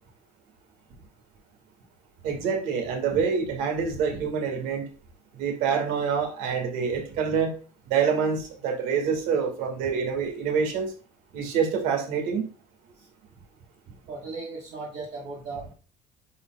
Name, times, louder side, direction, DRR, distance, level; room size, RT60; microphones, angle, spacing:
voice 1, 2.2-4.9 5.3-7.5 7.9-10.9 11.3-12.5, right 6 dB, 75° right, 5 dB, 1.9 m, -26 dB
voice 2, 13.9-15.7, right 3 dB, 50° right, -4 dB, 1.5 m, -38 dB
9.8 x 4.5 x 2.3 m, 0.36 s
cardioid pair, 175°, 14 cm